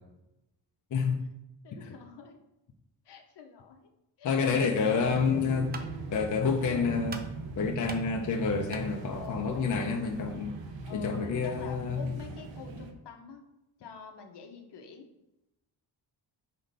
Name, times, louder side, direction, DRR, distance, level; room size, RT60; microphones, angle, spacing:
voice 1, 1.6-2.4 3.0-3.8 4.2-4.6 5.2-5.7 6.4-6.9 9.1-9.9 10.8-13.5 13.8-15.0, left 6 dB, 70° left, 4 dB, 0.9 m, -47 dB
voice 2, 4.2-5.7 6.1-7.2 7.6-10.6 10.9-12.1, left 5 dB, 45° left, 1 dB, 0.6 m, -28 dB
sound 1, 4.9-12.9, right 3 dB, 90° right, 0.9 m, -40 dB
sound 2, 5.4-10.5, right 4 dB, 25° right, 0.3 m, -48 dB
5.6 x 3.2 x 5.3 m, 0.91 s
wide cardioid pair, 170°, 43 cm